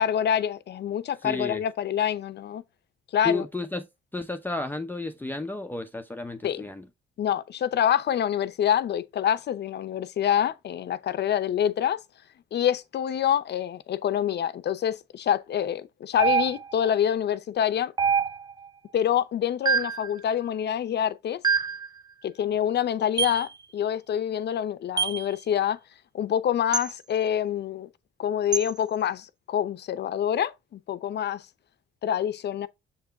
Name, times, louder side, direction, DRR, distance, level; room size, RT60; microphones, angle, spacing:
voice 1, 0.0-2.6 3.1-3.4 6.4-6.6 7.2-12.0 12.5-17.9 18.9-21.4 22.2-25.8 26.1-27.9 28.2-31.5 32.0-32.7, left 9 dB, 60° left, 0.7 m, -26 dB
voice 2, 1.2-1.6 3.2-3.9 4.1-6.9, left 3 dB, 10° left, 0.7 m, -32 dB
sound 1, 16.2-16.9 18.0-18.7 19.6-20.1 21.4-21.9 23.2-23.5 25.0-25.2 26.7-26.9 28.5-28.7, right 6 dB, 20° right, 0.3 m, -25 dB
7.3 x 3.5 x 4.0 m
cardioid pair, 90°, 20 cm